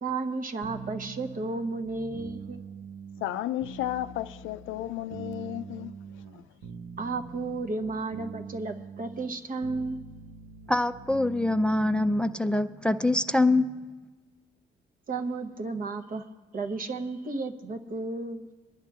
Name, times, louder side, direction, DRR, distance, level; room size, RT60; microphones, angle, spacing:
voice 1, 0.0-2.6 7.0-10.1 15.1-16.2 16.5-18.5, right 3 dB, 45° right, 0.9 m, -33 dB
sound 1, 0.6-12.5, right 6 dB, 80° right, 0.8 m, -44 dB
voice 2, 3.2-6.4, left 13 dB, 80° left, 0.4 m, -33 dB
voice 3, 10.7-13.7, left 2 dB, 5° left, 0.4 m, -24 dB
25.0 x 10.5 x 2.4 m
cardioid pair, 90°, 20 cm